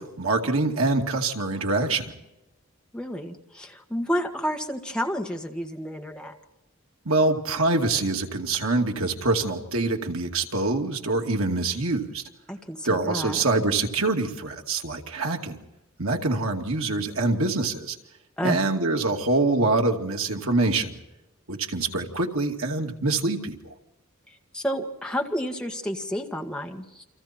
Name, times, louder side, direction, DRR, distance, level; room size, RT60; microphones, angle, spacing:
voice 1, 0.0-2.1 7.1-12.2 12.8-15.6 16.0-18.0 18.4-20.9 21.5-23.7, right 2 dB, 80° right, 2 dB, 2.4 m, -25 dB
voice 2, 2.9-6.4 12.5-13.4 18.4-18.7 24.5-27.0, equal, 5° left, 2 dB, 1.8 m, -30 dB
29.5 x 25.5 x 4.4 m, 0.97 s
head